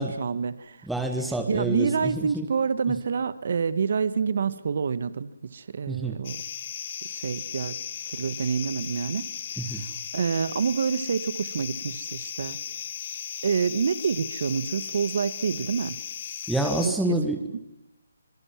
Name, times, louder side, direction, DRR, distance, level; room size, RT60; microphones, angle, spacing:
voice 1, 0.0-0.8 1.5-6.4 7.1-7.7 8.1-9.3 9.7-12.6 13.4-16.0 16.8-16.9 17.5-17.6, right 6 dB, 45° right, 16 dB, 1.2 m, -27 dB
voice 2, 0.8-2.5 5.9-6.2 9.6-9.8 16.5-17.4, right 2 dB, ahead, 4 dB, 1.3 m, -28 dB
sound 1, 6.2-16.9, left 8 dB, 30° left, 1.8 m, -36 dB
26.0 x 22.5 x 7.3 m, 0.94 s
hypercardioid pair, 175°, 0 cm